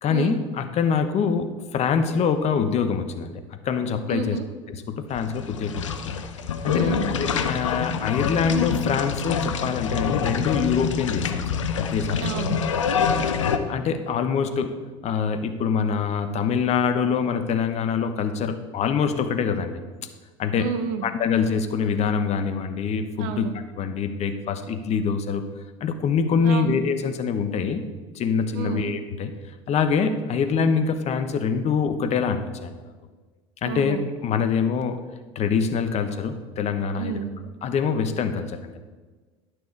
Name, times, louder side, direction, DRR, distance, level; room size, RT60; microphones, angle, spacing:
voice 1, 0.0-4.4 4.7-6.1 6.6-12.3 13.7-14.7 15.0-19.8 20.4-20.7 21.0-23.5 23.8-25.4 25.8-29.3 29.7-32.9 33.6-35.0 35.3-37.2 37.6-38.8, left 6 dB, 45° left, 9 dB, 1.0 m, -25 dB
voice 2, 4.1-4.4 6.7-7.1 12.2-12.6 20.6-21.1 23.2-23.5 26.4-26.8 28.5-28.9 33.6-34.0 37.0-37.3, right 8 dB, 65° right, 9 dB, 1.0 m, -30 dB
sound 1, 5.1-13.6, left 6 dB, 85° left, 0.7 m, -26 dB
11.5 x 6.2 x 4.6 m, 1.3 s
hypercardioid pair, 75°, 16 cm